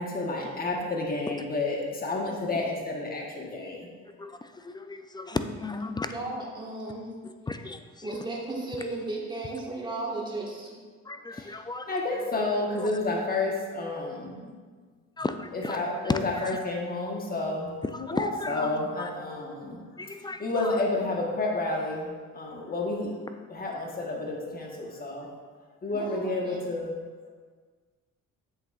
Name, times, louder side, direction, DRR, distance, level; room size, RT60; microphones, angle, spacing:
voice 1, 0.0-3.9 11.3-11.5 11.9-14.5 15.5-19.8 20.4-23.1 23.5-25.3 25.8-27.0, left 2 dB, 30° left, -1 dB, 1.2 m, -30 dB
voice 2, 4.2-6.1 7.2-8.1 11.0-11.9 12.8-12.9 15.2-16.6 17.8-18.7 19.0-19.1 20.0-20.8, left 3 dB, 15° left, 8 dB, 0.3 m, -35 dB
voice 3, 5.9-7.1 8.0-10.8 12.1-12.4 16.0-16.1 18.5-18.9 25.9-26.6, right 2 dB, 15° right, -3 dB, 1.6 m, -36 dB
7.8 x 6.5 x 2.4 m, 1.5 s
cardioid pair, 90°, 30 cm